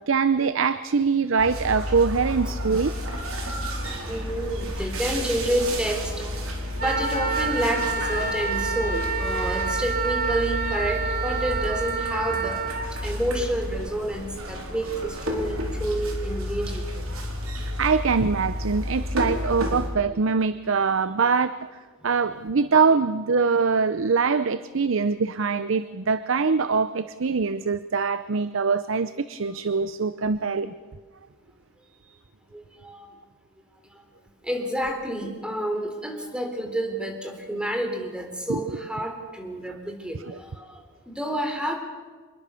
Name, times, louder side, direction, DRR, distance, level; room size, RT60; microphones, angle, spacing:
voice 1, 0.0-2.9 17.6-21.6 22.0-30.7 38.5-38.8 40.3-40.4, right 5 dB, 65° right, 14 dB, 0.7 m, -23 dB
sound 1, 1.4-19.9, equal, 85° right, 4.7 m, -31 dB
voice 2, 4.1-6.4 6.8-12.6 13.0-16.9 32.5-33.1 34.4-41.7, right 1 dB, 5° right, 4 dB, 3.7 m, -29 dB
Wind instrument woodwind instrument, 6.8-12.9, right 5 dB, 45° right, 2.7 m, -28 dB
26.0 x 21.5 x 7.0 m, 1.5 s
head